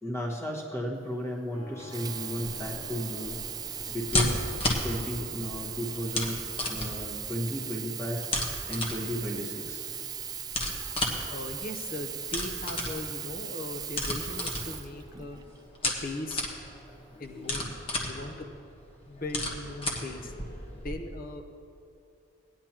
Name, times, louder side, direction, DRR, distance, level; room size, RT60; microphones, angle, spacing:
voice 1, 0.0-3.4 3.9-4.4 4.8-6.4 6.7-8.2 8.7-9.9, equal, 15° left, -2 dB, 1.5 m, -34 dB
Keyboard (musical), 1.5-13.9, left 2 dB, 75° left, 2.6 m, -52 dB
Sink (filling or washing), 1.8-15.6 16.3-16.4, right 9 dB, 20° right, 0.4 m, -38 dB
sound 1, 2.4-21.0, left 1 dB, 30° left, 1.3 m, -35 dB
voice 2, 11.3-15.4 15.8-16.5 17.2-17.7 18.0-18.7 19.1-20.3 20.7-21.4, left 2 dB, 50° left, 5 dB, 0.9 m, -39 dB
18.0 x 10.0 x 3.0 m, 2.6 s
head